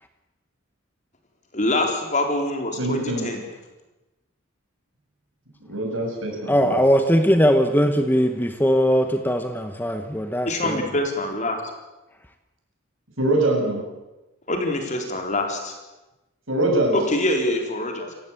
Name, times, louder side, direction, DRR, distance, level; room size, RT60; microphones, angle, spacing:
voice 1, 1.5-3.5 10.5-11.6 14.5-15.7 16.9-18.1, left 1 dB, 35° left, 3 dB, 4.1 m, -25 dB
voice 2, 2.8-3.3 5.7-6.8 13.2-13.8 16.5-17.0, right 1 dB, 70° right, 1 dB, 7.8 m, -23 dB
voice 3, 6.5-10.8, equal, 10° left, 7 dB, 1.1 m, -20 dB
29.0 x 15.5 x 8.4 m, 1.0 s
head